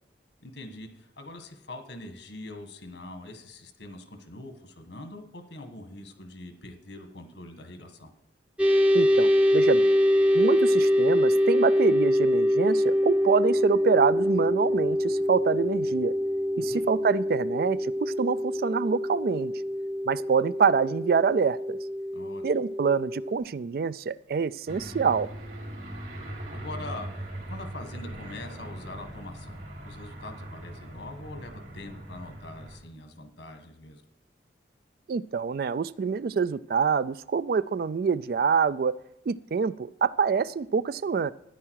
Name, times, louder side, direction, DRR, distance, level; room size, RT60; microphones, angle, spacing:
voice 1, 0.4-8.1 16.5-16.9 22.1-22.6 26.5-34.0, left 2 dB, 75° left, 6 dB, 1.6 m, -43 dB
sound 1, 8.6-23.3, equal, 5° right, 0.6 m, -24 dB
voice 2, 8.9-9.9 10.3-16.1 16.6-19.5 20.1-21.8 22.4-25.3 35.1-39.0 39.3-41.3, right 5 dB, 55° right, 17 dB, 0.3 m, -26 dB
Aircraft, 24.7-32.8, right 1 dB, 70° right, 3.1 m, -40 dB
13.5 x 9.9 x 4.7 m, 0.81 s
head